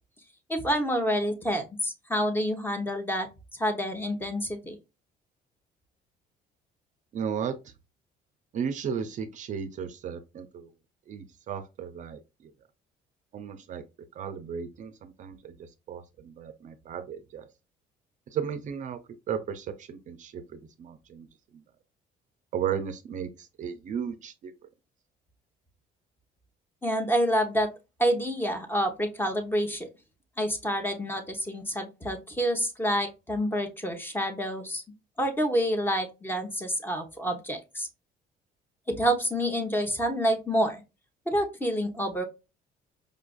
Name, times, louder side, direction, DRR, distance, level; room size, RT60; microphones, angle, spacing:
voice 1, 0.5-4.8 26.8-27.7 28.0-29.9 30.4-34.8 35.2-37.9 38.9-40.8 41.3-42.3, equal, 10° left, 0.8 m, -28 dB
voice 2, 7.1-7.7 8.5-10.7 11.1-12.5 13.3-13.8 14.1-17.5 18.3-19.0 19.3-21.3 21.5-21.6 22.5-24.5, right 7 dB, 50° right, 0.4 m, -35 dB
5.0 x 2.4 x 2.3 m
cardioid pair, 110°, 17 cm